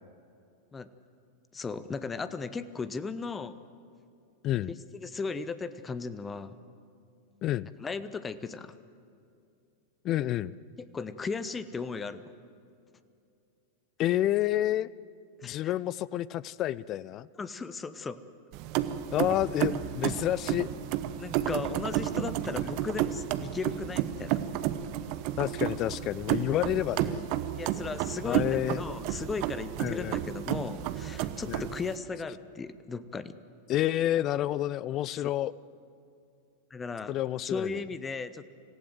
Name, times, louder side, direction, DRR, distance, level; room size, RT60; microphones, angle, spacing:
voice 1, 1.5-3.6 4.7-6.5 7.8-8.7 10.8-12.3 15.4-15.7 17.4-18.2 21.2-24.4 27.6-33.4 35.1-35.2 36.7-37.1 37.4-38.5, left 4 dB, 15° left, 15 dB, 0.8 m, -36 dB
voice 2, 10.0-10.5 14.0-14.9 15.4-17.3 19.1-20.7 25.4-27.3 28.2-28.8 29.8-30.2 31.5-31.7 33.7-35.5 37.1-37.8, left 13 dB, 35° left, 22 dB, 0.4 m, -29 dB
sound 1, 18.5-32.0, right 12 dB, 45° right, 0.9 m, -32 dB
26.0 x 16.0 x 7.8 m, 2.5 s
figure-of-eight pair, 90°, 0 cm